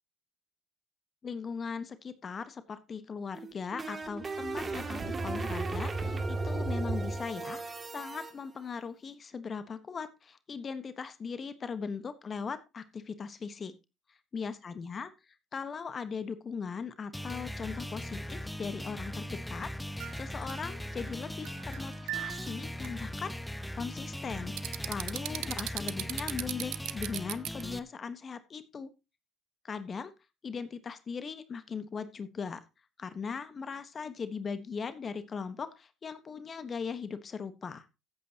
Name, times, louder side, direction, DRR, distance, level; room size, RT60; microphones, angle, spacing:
voice 1, 1.2-13.7 14.3-15.1 15.5-24.5 24.9-28.9 29.6-30.1 30.4-32.6 33.0-37.9, left 5 dB, 40° left, 12 dB, 1.2 m, -39 dB
sound 1, 3.3-8.3, right 3 dB, 30° right, 2.3 m, -35 dB
sound 2, 17.1-27.8, equal, 5° left, 0.9 m, -39 dB
sound 3, 20.0-21.0 21.4-22.5 22.8-23.0 24.6-27.6, right 16 dB, 70° right, 0.6 m, -37 dB
15.0 x 8.5 x 2.9 m, 0.26 s
hypercardioid pair, 60°, 0 cm